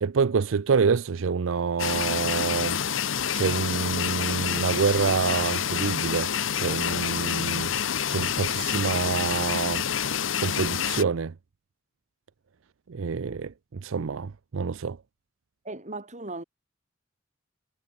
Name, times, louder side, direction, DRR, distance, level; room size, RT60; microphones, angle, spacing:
voice 1, 0.0-2.8 3.3-7.7 8.1-9.9 10.4-11.3 12.9-15.0, right 5 dB, 85° right, 0.5 m, -27 dB
sound 1, 1.8-11.0, left 8 dB, 75° left, 1.0 m, -28 dB
voice 2, 15.6-16.4, right 2 dB, 40° right, 4.6 m, -37 dB
head